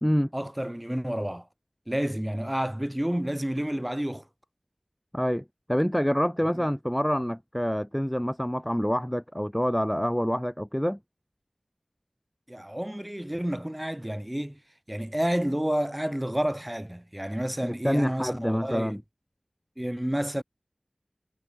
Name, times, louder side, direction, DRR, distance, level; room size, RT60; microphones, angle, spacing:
voice 1, 0.3-1.5 1.9-4.3 6.5-6.6 12.5-14.6 14.9-19.0 19.8-20.4, equal, 15° right, 1.4 m, -30 dB
voice 2, 5.1-11.0 17.6-19.0, equal, 5° left, 0.5 m, -27 dB
wide cardioid pair, 50°, 0 cm